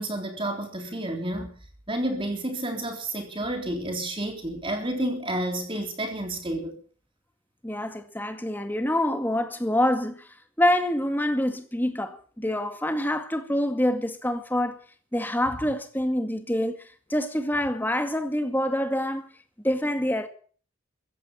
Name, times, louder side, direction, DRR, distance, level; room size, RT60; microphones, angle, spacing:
voice 1, 0.0-1.5 1.9-6.7, right 1 dB, 25° right, 3.5 m, -30 dB
voice 2, 7.6-10.3 10.6-14.8 15.1-16.8 17.1-19.3 19.6-20.3, left 1 dB, 10° left, 2.0 m, -26 dB
15.5 x 15.5 x 5.6 m
head